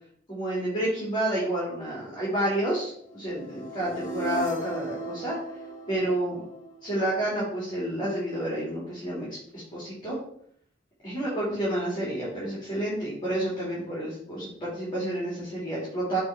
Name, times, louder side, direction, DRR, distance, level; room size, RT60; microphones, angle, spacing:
voice 1, 0.3-5.4 5.9-6.4 6.8-9.3 9.5-10.2 11.0-16.2, right 1 dB, 25° left, -8 dB, 3.4 m, -29 dB
sound 1, 3.3-7.3, equal, 45° left, 1.6 m, -37 dB
6.6 x 4.1 x 6.1 m, 0.65 s
head